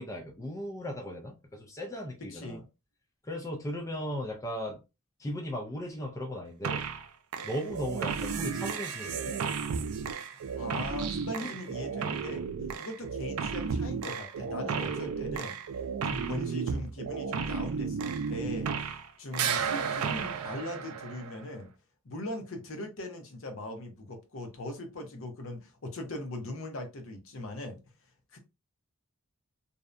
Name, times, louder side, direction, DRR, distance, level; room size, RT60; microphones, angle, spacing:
voice 1, 0.0-2.6 3.3-4.8 5.2-6.8 7.4-9.4 11.4-11.5, equal, 15° left, 0.3 m, -37 dB
voice 2, 2.2-2.6 10.6-12.4 12.8-15.6 16.0-21.7 22.0-27.8 28.3-28.4, left 1 dB, 60° left, 0.7 m, -40 dB
sound 1, 6.6-7.1 7.3-19.1 19.3-21.5, right 6 dB, 80° right, 0.4 m, -33 dB
2.6 x 2.1 x 2.4 m
head